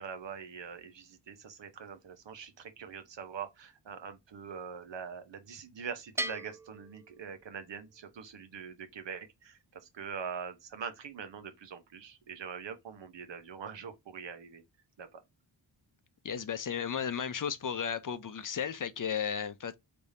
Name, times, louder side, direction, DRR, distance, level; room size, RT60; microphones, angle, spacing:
voice 1, 0.0-14.6 15.0-15.2, right 6 dB, 65° right, 0.9 m, -43 dB
Bell, 6.2-7.9, right 1 dB, 5° right, 0.3 m, -40 dB
voice 2, 16.2-19.8, left 7 dB, 45° left, 0.6 m, -34 dB
3.4 x 3.4 x 2.6 m
cardioid pair, 45°, 47 cm